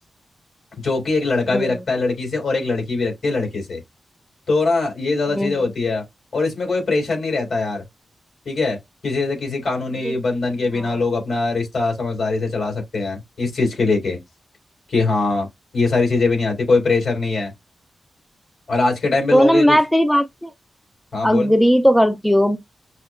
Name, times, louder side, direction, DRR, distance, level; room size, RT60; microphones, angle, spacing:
voice 1, 0.8-3.8 4.5-6.0 6.3-7.8 8.5-8.8 9.0-14.2 14.9-15.5 15.7-17.5 18.7-19.8 21.1-21.5, left 3 dB, 65° left, 3.4 m, -21 dB
voice 2, 5.3-5.6 10.0-10.1 10.7-11.0 19.3-20.5 21.2-22.6, equal, 5° left, 0.4 m, -17 dB
5.9 x 2.8 x 2.4 m
wide cardioid pair, 105°, 0 cm